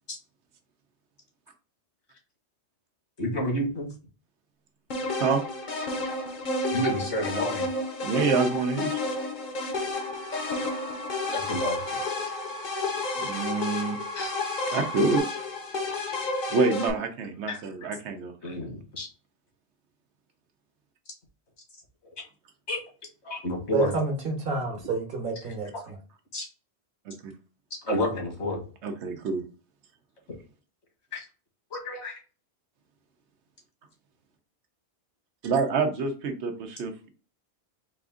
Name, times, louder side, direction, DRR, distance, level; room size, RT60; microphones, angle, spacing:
voice 1, 3.2-3.9 6.7-7.7 11.3-12.0 14.2-14.4 17.5-17.6 18.4-19.1 22.1-22.2 22.7-22.8 23.2-23.9 25.5-25.6 26.3-26.5 27.7-28.6 30.3-30.4 31.1-31.3 31.7-32.2, left 1 dB, 75° left, -1 dB, 1.8 m, -30 dB
sound 1, 4.9-16.9, left 3 dB, 50° left, 0.8 m, -31 dB
voice 2, 8.0-9.0 13.2-14.0 14.7-15.2 16.5-18.3 27.2-27.3 28.8-29.4 35.4-37.1, right 4 dB, 80° right, 6 dB, 1.0 m, -27 dB
sound 2, 9.9-15.2, right 1 dB, 5° left, 0.4 m, -39 dB
voice 3, 23.7-25.9, right 3 dB, 55° right, 3 dB, 1.2 m, -29 dB
4.1 x 2.5 x 3.7 m, 0.36 s
omnidirectional pair, 1.1 m